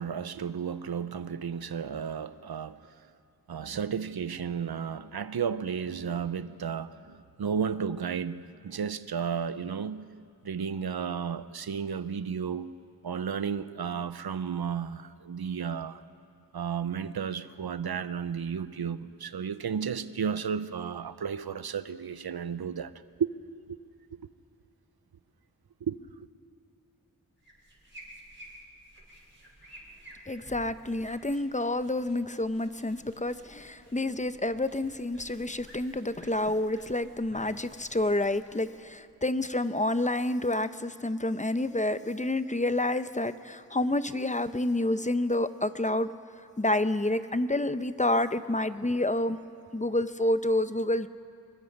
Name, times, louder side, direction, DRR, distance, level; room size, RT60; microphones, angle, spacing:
voice 1, 0.0-2.8 3.5-10.1 10.4-12.7 13.0-16.0 16.5-22.9 23.2-23.3 23.7-23.8 25.8-26.0, right 7 dB, 85° right, 0.7 m, -33 dB
sound 1, 27.4-39.3, right 1 dB, 30° right, 6.5 m, -53 dB
voice 2, 30.3-46.1 46.6-49.4 49.7-51.1, left 1 dB, 20° left, 0.7 m, -29 dB
25.0 x 22.0 x 5.3 m
wide cardioid pair, 50°, 37 cm